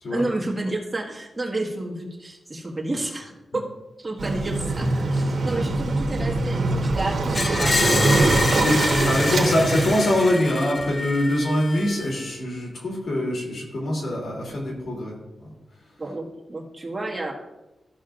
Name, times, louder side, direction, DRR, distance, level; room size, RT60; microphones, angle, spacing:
voice 1, 0.1-3.6 4.0-8.0 15.0-15.1 16.0-17.3, right 2 dB, 25° right, -2 dB, 1.7 m, -30 dB
Waves surf, 4.2-10.0, right 2 dB, 70° right, 1.3 m, -23 dB
Screech, 7.3-12.3, left 2 dB, 30° left, 0.6 m, -27 dB
voice 2, 8.3-15.1 15.4-15.5, left 1 dB, 80° left, -3 dB, 2.9 m, -24 dB
14.0 x 6.4 x 2.5 m, 1.0 s
wide cardioid pair, 120°, 0 cm